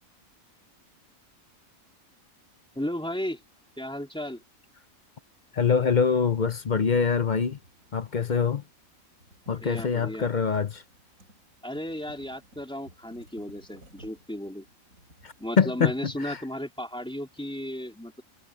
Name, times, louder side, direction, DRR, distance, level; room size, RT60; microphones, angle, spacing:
voice 1, 2.7-3.4 3.8-4.4 9.5-10.3 11.6-14.7 15.4-18.2, left 1 dB, 5° left, 3.1 m, -34 dB
voice 2, 5.5-7.6 7.9-8.6 9.5-10.8 15.2-15.9 16.2-16.4, left 6 dB, 40° left, 0.7 m, -24 dB
sound 1, 7.5-8.6 8.8-16.1, right 1 dB, 75° right, 7.7 m, -55 dB
omnidirectional pair, 1.4 m